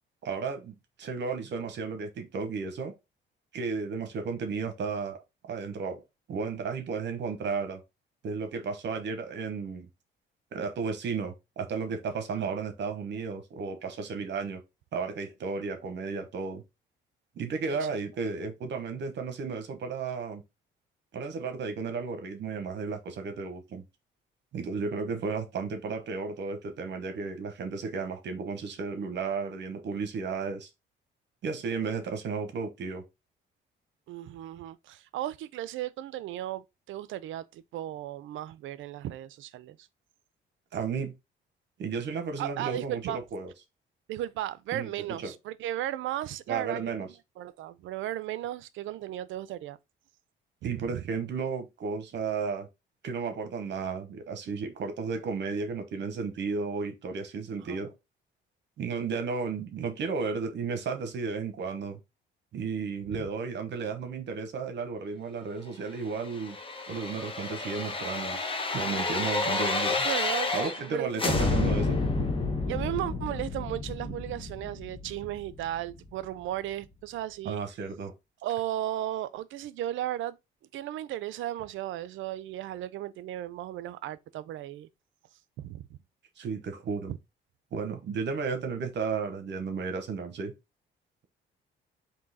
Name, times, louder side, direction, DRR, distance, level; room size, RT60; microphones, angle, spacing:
voice 1, 0.2-2.9 3.5-5.2 5.5-6.0 6.3-7.8 8.2-9.9 10.5-14.6 14.9-16.6 17.4-20.4 21.1-23.8 24.5-30.7 31.4-33.0 40.7-41.1 41.8-43.0 43.3-43.5 44.7-44.9 45.2-45.3 46.5-47.1 50.6-52.7 53.0-57.9 58.8-62.0 62.5-66.6 66.9-68.4 68.7-70.1 70.5-72.0 77.4-78.1 86.4-87.1 87.7-90.5, right 5 dB, 65° right, 0.9 m, -33 dB
voice 2, 17.7-18.0 34.1-39.9 42.4-43.2 44.1-49.8 50.6-51.0 57.6-57.8 63.1-63.3 70.0-70.5 70.8-71.9 72.2-72.3 72.7-77.6 78.4-80.4 80.7-84.9 85.6-86.0 87.1-87.2, right 13 dB, 80° right, 0.5 m, -35 dB
sound 1, 66.2-70.9 71.2-76.0 76.4-76.5, left 3 dB, 25° left, 0.9 m, -30 dB
3.7 x 2.8 x 4.0 m
cardioid pair, 90°, 20 cm